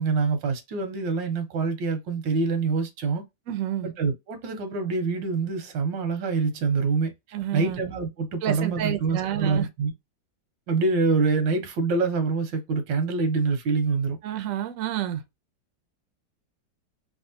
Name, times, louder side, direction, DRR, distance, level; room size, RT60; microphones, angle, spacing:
voice 1, 0.0-3.2 3.8-7.1 7.5-9.9 10.7-14.2, right 4 dB, 85° right, 1.5 m, -25 dB
voice 2, 3.5-3.9 7.3-7.8 8.4-9.7 14.2-15.2, right 11 dB, 70° right, 0.7 m, -29 dB
3.5 x 2.2 x 2.7 m
omnidirectional pair, 2.0 m